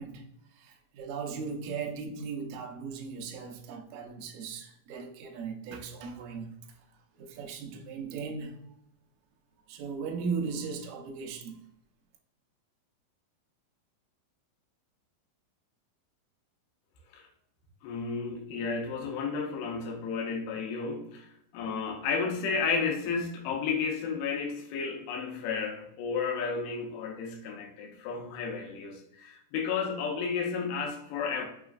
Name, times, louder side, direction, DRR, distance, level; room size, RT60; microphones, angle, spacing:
voice 1, 0.0-8.6 9.6-11.6, right 5 dB, 90° right, 3 dB, 1.6 m, -38 dB
voice 2, 17.8-21.3 21.5-31.5, left 5 dB, 75° left, 1 dB, 2.3 m, -32 dB
5.8 x 3.0 x 2.4 m, 0.75 s
omnidirectional pair, 4.1 m